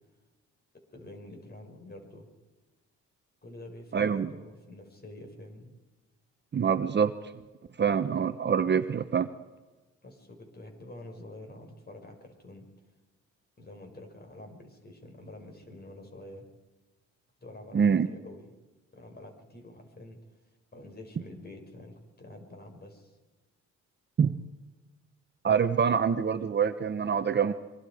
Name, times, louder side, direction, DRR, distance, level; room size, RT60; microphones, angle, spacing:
voice 1, 0.9-2.3 3.4-5.7 10.0-12.7 13.6-16.5 17.4-18.5 18.9-20.2 20.7-23.2, left 1 dB, 30° left, 4 dB, 5.5 m, -47 dB
voice 2, 3.9-4.3 6.5-7.1 7.8-9.3 17.7-18.1 24.2-24.4 25.4-27.5, right 7 dB, 35° right, 10 dB, 0.9 m, -25 dB
25.5 x 23.5 x 5.0 m, 1.2 s
cardioid pair, 90°, 30 cm